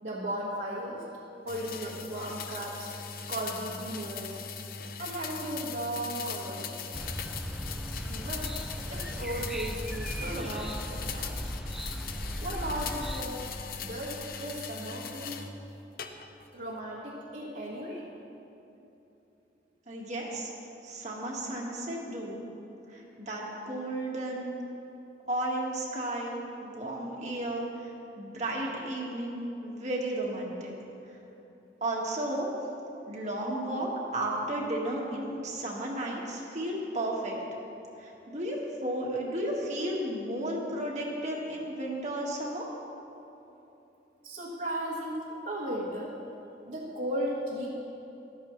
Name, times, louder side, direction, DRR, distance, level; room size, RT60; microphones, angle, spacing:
voice 1, 0.0-1.0 1.4-2.9 3.3-4.4 5.0-7.0 8.1-8.5 8.9-11.4 12.4-13.4 13.8-15.4 16.5-18.1 44.2-46.1 46.6-47.7, right 1 dB, 70° right, -8 dB, 1.7 m, -36 dB
sound 1, 1.5-15.5 16.0-16.5, left 6 dB, 55° left, 0.6 m, -40 dB
sound 2, 6.9-13.2, equal, ahead, 0.4 m, -37 dB
voice 2, 19.9-20.5 20.8-22.4 22.9-24.5 25.3-30.7 31.8-32.5 33.1-37.4 38.0-42.7, right 1 dB, 40° right, -3 dB, 1.7 m, -33 dB
14.5 x 12.5 x 3.2 m, 3.0 s
head